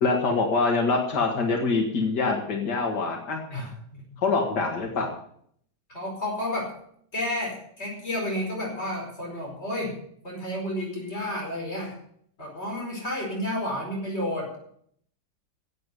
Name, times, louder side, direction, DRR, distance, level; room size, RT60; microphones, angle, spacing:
voice 1, 0.0-3.4 4.2-5.1, left 3 dB, 90° left, 2 dB, 2.4 m, -24 dB
voice 2, 3.5-4.0 5.9-6.8 7.1-10.0 10.2-12.0 12.4-14.5, left 1 dB, 40° left, -2 dB, 5.4 m, -31 dB
11.5 x 8.3 x 9.3 m, 0.65 s
omnidirectional pair, 1.8 m